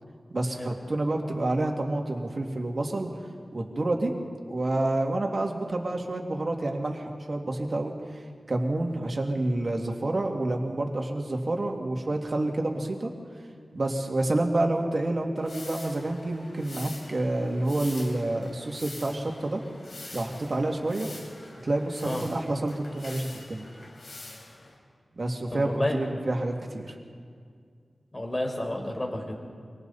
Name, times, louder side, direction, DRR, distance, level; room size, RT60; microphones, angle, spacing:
voice 1, 0.3-3.1 3.5-4.1 4.5-8.2 8.5-13.1 13.7-19.6 20.1-21.1 21.6-23.7 25.2-27.0, right 2 dB, 45° right, 1 dB, 2.5 m, -28 dB
sound 1, 15.4-24.8, left 2 dB, 65° left, 4.9 m, -45 dB
voice 2, 25.5-25.9 28.1-29.4, left 1 dB, 25° left, 1 dB, 4.3 m, -30 dB
25.5 x 25.0 x 4.2 m, 2.1 s
wide cardioid pair, 100°, 0 cm